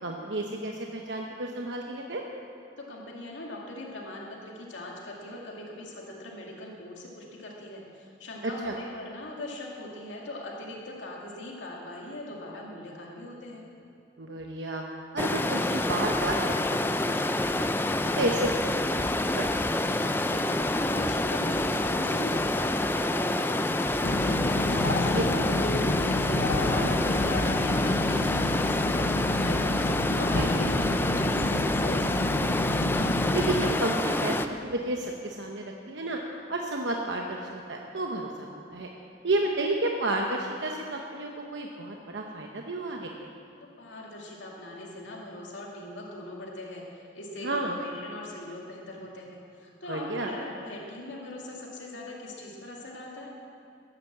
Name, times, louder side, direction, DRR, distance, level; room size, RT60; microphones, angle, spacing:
voice 1, 0.0-2.2 8.6-8.7 14.2-14.8 15.1-16.8 17.1-17.3 17.6-17.7 18.1-20.1 25.1-25.5 26.7-26.9 30.4-30.7 33.3-36.2 36.5-38.9 39.2-43.3 47.4-47.8 49.9-50.4, right 2 dB, 75° right, 1 dB, 1.0 m, -31 dB
voice 2, 2.9-13.6 20.3-32.5 43.6-53.3, left 1 dB, 85° left, -2 dB, 2.3 m, -40 dB
Stream, 15.2-34.5, left 1 dB, 10° left, 0.4 m, -27 dB
sound 1, 24.0-33.7, left 2 dB, 65° left, 0.8 m, -29 dB
13.5 x 10.5 x 7.3 m, 2.5 s
head